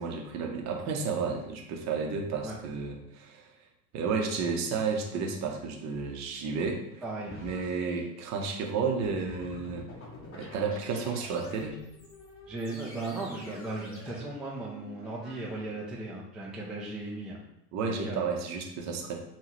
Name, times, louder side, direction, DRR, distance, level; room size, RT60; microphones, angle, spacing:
voice 1, 0.0-3.5 3.9-7.0 7.4-9.9 10.3-11.8 17.7-19.2, right 5 dB, 35° right, 2 dB, 0.8 m, -32 dB
voice 2, 7.0-7.4 12.5-17.4 18.0-18.2, right 2 dB, ahead, -5 dB, 0.4 m, -37 dB
sound 1, 7.3-8.1 9.0-15.9, left 2 dB, 25° left, 1.2 m, -48 dB
5.3 x 2.3 x 3.0 m, 0.83 s
hypercardioid pair, 90°, 49 cm